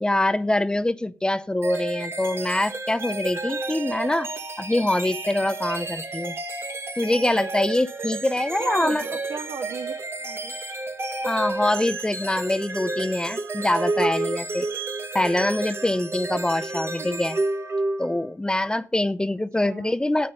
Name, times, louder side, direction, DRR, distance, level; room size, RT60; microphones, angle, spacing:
voice 1, 0.0-4.3 4.6-6.4 7.0-9.0 11.2-14.7 15.1-17.4 18.0-20.3, left 1 dB, 15° left, 0.7 m, -24 dB
sound 1, 1.6-18.3, right 2 dB, 45° right, 1.8 m, -31 dB
voice 2, 8.6-9.9 10.2-10.5 17.0-17.2 19.6-20.0, right 5 dB, 75° right, 1.5 m, -35 dB
9.7 x 8.5 x 5.3 m
supercardioid pair, 50°, 6 cm